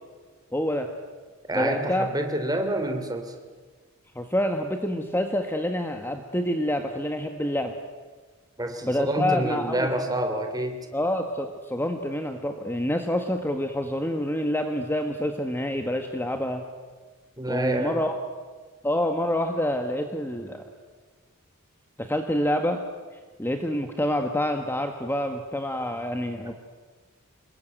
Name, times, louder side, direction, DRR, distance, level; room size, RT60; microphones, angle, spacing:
voice 1, 0.5-0.9 1.5-2.1 4.1-7.7 8.8-9.9 10.9-16.6 17.5-18.1 18.8-20.7 22.0-22.8 23.4-26.5, left 1 dB, 10° left, 5 dB, 1.5 m, -27 dB
voice 2, 1.5-3.3 8.6-10.8 17.4-18.0 26.5-26.6, right 1 dB, 15° right, 6 dB, 3.0 m, -28 dB
26.5 x 21.0 x 9.3 m, 1.4 s
head